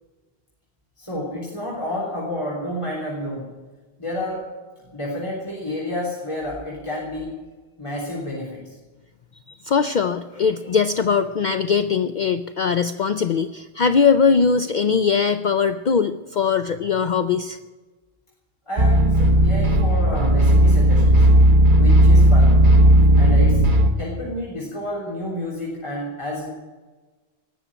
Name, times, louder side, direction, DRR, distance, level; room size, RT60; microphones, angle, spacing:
voice 1, 1.0-3.5 4.0-4.4 4.9-7.3 7.8-8.7 18.7-21.2 21.8-22.5 23.1-23.6 24.0-26.5, left 1 dB, 30° left, -5 dB, 3.6 m, -30 dB
voice 2, 9.5-17.6, left 6 dB, 55° left, 10 dB, 0.6 m, -21 dB
sound 1, 18.8-23.9, right 1 dB, 50° right, 1.5 m, -14 dB
18.5 x 7.2 x 10.0 m, 1.3 s
omnidirectional pair, 1.1 m